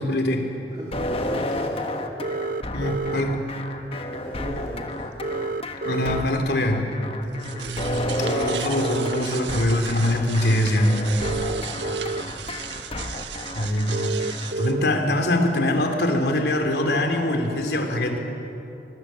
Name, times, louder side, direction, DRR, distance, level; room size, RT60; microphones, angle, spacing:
voice 1, 0.0-0.5 2.7-3.4 5.8-6.9 8.2-11.0 13.5-14.1 14.6-18.2, left 1 dB, 70° left, 4 dB, 3.0 m, -23 dB
voice 2, 0.7-1.9 4.1-5.1 7.3-7.8 11.4-12.4 13.9-15.0, equal, 25° right, -5 dB, 3.2 m, -39 dB
sound 1, 0.9-14.5, left 1 dB, 30° left, 1.4 m, -31 dB
sound 2, 2.2-3.2 5.2-6.2 8.2-9.2 11.2-12.2 12.8-12.9 13.9-14.9 16.9-17.0, right 3 dB, 50° right, 0.5 m, -29 dB
sound 3, 7.2-14.7, right 5 dB, 90° right, 1.4 m, -35 dB
25.0 x 22.0 x 7.5 m, 2.9 s
head